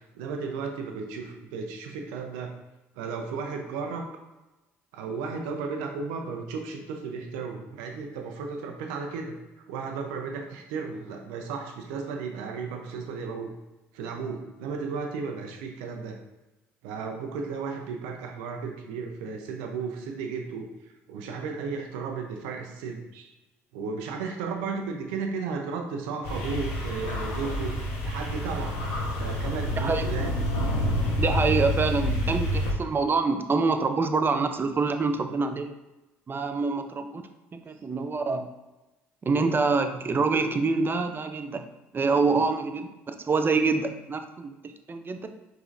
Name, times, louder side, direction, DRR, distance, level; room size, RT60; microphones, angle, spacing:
voice 1, 0.0-2.5 3.0-4.0 4.9-9.4 9.7-13.5 13.9-16.2 16.8-20.7 21.1-23.3 23.7-28.8 29.1-30.3 37.7-37.8, right 5 dB, 80° right, 3 dB, 0.7 m, -34 dB
sound 1, 26.2-32.7, left 1 dB, 80° left, 1.1 m, -28 dB
voice 2, 31.2-35.7 36.3-37.2 37.5-38.5 39.3-41.6 41.9-45.3, right 4 dB, 30° right, 7 dB, 0.5 m, -26 dB
5.0 x 3.8 x 2.6 m, 1.0 s
hypercardioid pair, 60°, 7 cm